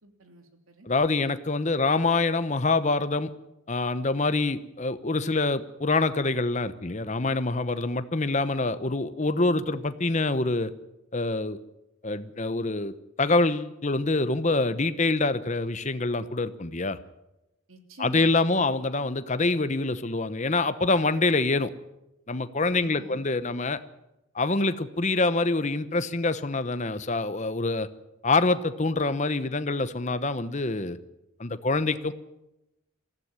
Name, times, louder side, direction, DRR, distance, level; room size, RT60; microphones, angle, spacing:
voice 1, 0.0-0.9 17.7-18.7 22.8-23.3, right 1 dB, 85° right, 6 dB, 3.1 m, -47 dB
voice 2, 0.8-3.3 3.7-10.7 11.1-11.6 12.0-17.0 18.0-21.7 22.3-23.8 24.3-27.9 28.2-31.0 31.4-32.1, left 3 dB, 35° left, 12 dB, 0.9 m, -25 dB
20.5 x 15.0 x 9.8 m, 0.93 s
head